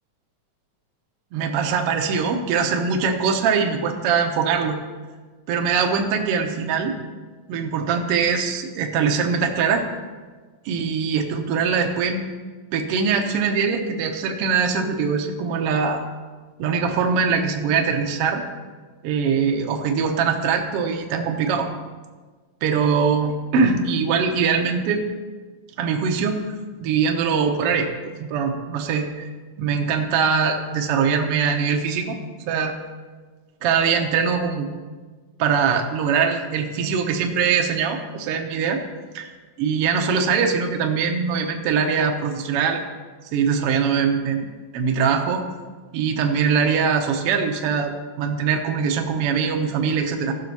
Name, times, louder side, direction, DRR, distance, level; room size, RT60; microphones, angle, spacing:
voice 1, 1.3-4.7 5.5-6.9 7.5-9.8 10.6-12.2 12.7-16.0 16.6-18.4 19.0-21.7 22.6-25.0 25.8-26.4 26.8-27.9 28.2-29.3 29.6-32.2 32.5-32.7 33.6-34.7 35.4-38.8 39.1-39.3 39.6-42.8 43.3-44.5 44.7-45.4 45.9-50.3, right 6 dB, 65° right, 3 dB, 1.5 m, -22 dB
15.5 x 6.3 x 4.7 m, 1.4 s
omnidirectional pair, 3.7 m